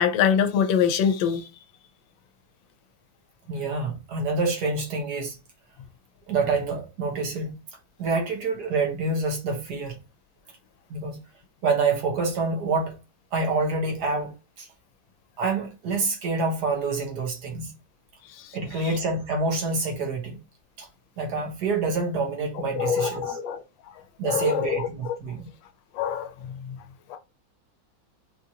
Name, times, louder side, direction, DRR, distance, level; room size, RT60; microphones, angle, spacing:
voice 1, 0.0-1.4 22.7-23.6 24.2-25.1 25.9-26.3 26.6-26.8 27.1-27.2, left 8 dB, 80° left, 1.3 m, -24 dB
voice 2, 3.5-5.4 6.3-7.6 8.0-10.0 10.9-11.2 11.6-13.0 13.3-14.7 15.4-17.8 18.5-20.4 20.8-20.9 21.2-23.4 24.2-25.5, right 3 dB, 60° right, 1.4 m, -27 dB
4.3 x 2.5 x 2.7 m
omnidirectional pair, 2.1 m